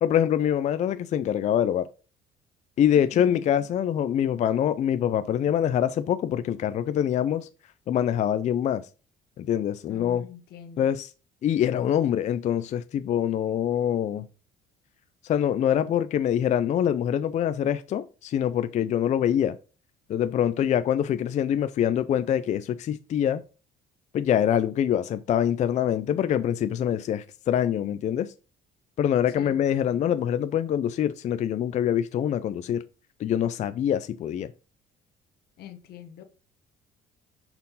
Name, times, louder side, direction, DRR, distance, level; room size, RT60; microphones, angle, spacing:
voice 1, 0.0-1.9 2.8-7.5 7.9-8.8 9.4-10.2 10.8-11.1 11.4-14.3 15.2-19.6 20.1-23.4 24.1-28.3 29.0-32.8 33.2-34.5, left 10 dB, 45° left, 0.4 m, -25 dB
voice 2, 2.9-3.7 9.9-10.9 29.3-30.0 35.6-36.2, left 9 dB, 70° left, 1.0 m, -44 dB
5.4 x 4.3 x 4.0 m
cardioid pair, 110°, 17 cm